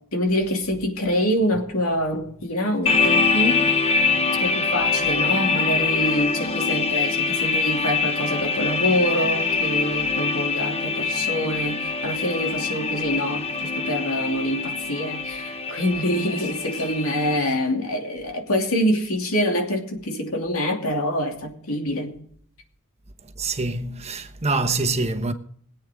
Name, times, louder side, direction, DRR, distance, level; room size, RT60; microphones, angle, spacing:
voice 1, 0.1-3.7 4.4-22.1, equal, 75° left, 2.8 m, -25 dB
sound 1, 2.9-17.4, left 5 dB, 30° left, 0.9 m, -24 dB
voice 2, 23.4-25.3, right 3 dB, 30° right, 1.1 m, -25 dB
21.5 x 8.8 x 3.7 m
head